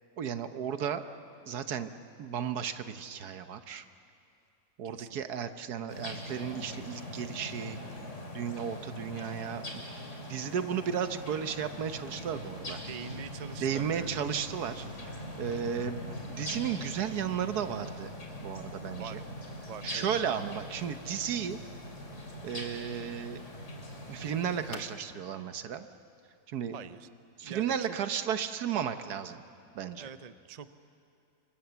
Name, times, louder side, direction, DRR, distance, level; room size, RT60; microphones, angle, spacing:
voice 1, 0.2-1.1 1.5-1.9 2.2-3.9 4.8-7.8 8.3-9.8 10.3-12.8 13.6-18.1 18.4-19.2 19.8-21.6 22.4-23.4 24.1-25.9 26.5-26.8 27.4-29.4 29.7-30.1, right 8 dB, 70° right, 10 dB, 1.5 m, -34 dB
voice 2, 4.8-5.2 12.9-14.1 19.0-19.3 19.7-20.3 26.7-27.1 27.4-28.0 30.0-30.7, right 7 dB, 45° right, 12 dB, 0.5 m, -44 dB
sound 1, 5.9-24.8, left 1 dB, 45° left, 3.1 m, -42 dB
sound 2, 9.7-27.3, left 1 dB, 30° left, 1.7 m, -55 dB
27.5 x 23.5 x 7.0 m, 2.6 s
omnidirectional pair, 1.7 m